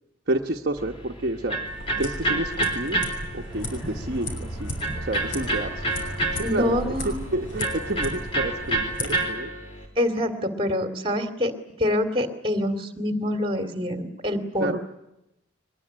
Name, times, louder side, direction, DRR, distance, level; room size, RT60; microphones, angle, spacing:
voice 1, 0.3-1.6 2.0-3.1 3.3-5.8 6.3-9.5 14.6-14.8, right 1 dB, 50° right, 2 dB, 1.1 m, -30 dB
Electric guitar, 0.8-9.9, right 2 dB, 25° left, 4.0 m, -30 dB
sound 1, 1.6-9.1, left 1 dB, 70° left, 6.2 m, -36 dB
sound 2, 3.5-9.0, right 1 dB, 5° left, 6.7 m, -40 dB
voice 2, 6.4-7.2 10.0-11.5 11.8-14.8, left 1 dB, 25° right, 7 dB, 2.5 m, -26 dB
23.5 x 20.5 x 10.0 m, 0.91 s
head